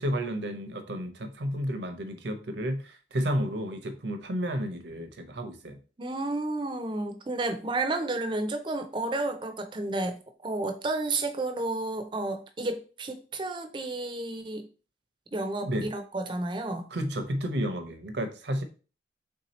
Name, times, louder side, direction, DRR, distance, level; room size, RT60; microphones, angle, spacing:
voice 1, 0.0-5.8 15.6-15.9 16.9-18.6, equal, 75° right, 0.7 m, -31 dB
voice 2, 6.0-14.7 15.3-16.9, right 2 dB, 25° right, 0.5 m, -31 dB
3.6 x 2.7 x 4.1 m
head